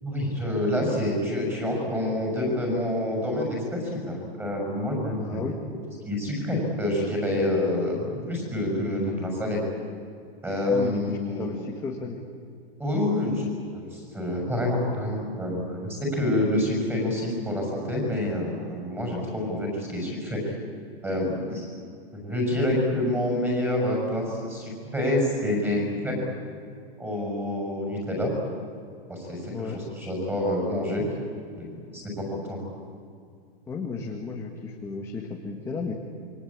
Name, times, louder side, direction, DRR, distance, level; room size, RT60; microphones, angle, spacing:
voice 1, 0.0-5.4 6.0-9.6 10.4-11.5 12.8-13.4 13.7-20.5 21.0-21.7 22.1-26.1 27.0-28.3 29.1-31.0 31.6-32.6, left 1 dB, 5° right, 0 dB, 6.7 m, -27 dB
voice 2, 5.2-5.6 10.7-12.2 29.5-29.8 33.7-35.9, left 4 dB, 10° left, 0 dB, 1.7 m, -34 dB
28.0 x 23.5 x 8.8 m, 2.3 s
hypercardioid pair, 165°, 31 cm